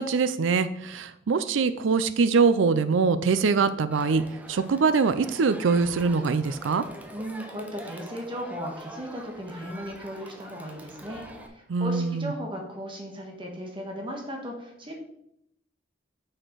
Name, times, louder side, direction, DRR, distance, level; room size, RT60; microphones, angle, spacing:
voice 1, 0.0-6.8 11.7-12.3, right 4 dB, 90° right, 12 dB, 0.5 m, -23 dB
Crowd, 3.9-11.5, right 1 dB, 10° right, 0.8 m, -44 dB
voice 2, 7.1-15.0, equal, 25° right, 1 dB, 1.4 m, -36 dB
6.4 x 6.4 x 4.6 m, 0.76 s
head